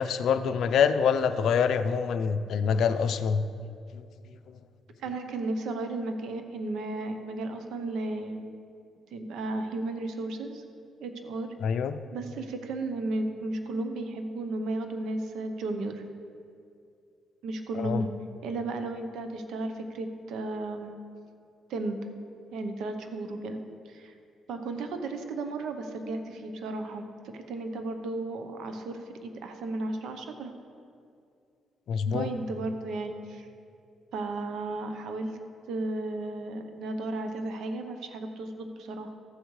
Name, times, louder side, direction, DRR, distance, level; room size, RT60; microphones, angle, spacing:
voice 1, 0.0-3.4 3.9-4.0 11.6-12.0 17.7-18.0 31.9-32.3, left 6 dB, 70° left, 10 dB, 0.5 m, -25 dB
voice 2, 5.0-8.5 9.1-10.6 11.0-11.5 12.1-16.0 17.4-18.1 18.4-20.9 21.7-22.0 22.5-23.6 23.9-24.1 24.5-27.1 27.3-30.5 32.1-33.5 34.1-35.3 35.7-39.1, right 2 dB, 80° right, 6 dB, 0.8 m, -34 dB
14.0 x 8.0 x 3.2 m, 2.4 s
cardioid pair, 90°, 0 cm